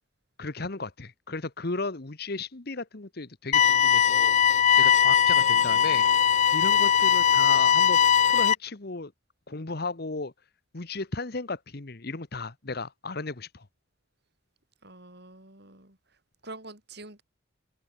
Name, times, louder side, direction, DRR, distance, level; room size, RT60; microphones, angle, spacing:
voice 1, 0.4-4.4 4.8-6.1 6.5-8.0 8.3-9.1 9.5-10.3 10.7-13.7, left 3 dB, 50° left, 1.2 m, -35 dB
sound 1, 3.5-8.5, left 8 dB, 35° left, 0.3 m, -20 dB
voice 2, 5.3-6.2 14.8-17.2, right 2 dB, 55° right, 5.1 m, -47 dB
head